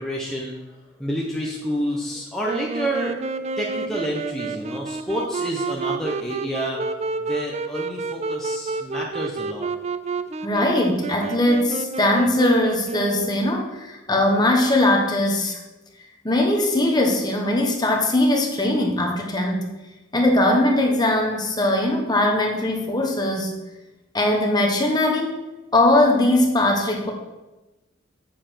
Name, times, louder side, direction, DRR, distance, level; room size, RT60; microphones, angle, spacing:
voice 1, 0.0-9.7, equal, ahead, -3 dB, 0.9 m, -29 dB
Wind instrument woodwind instrument, 2.4-13.6, right 4 dB, 30° right, 0.4 m, -30 dB
voice 2, 10.4-15.6 16.2-19.7 20.1-23.5 24.1-25.3 25.7-27.1, left 1 dB, 20° left, 1 dB, 1.2 m, -20 dB
7.3 x 6.9 x 5.8 m, 1.1 s
head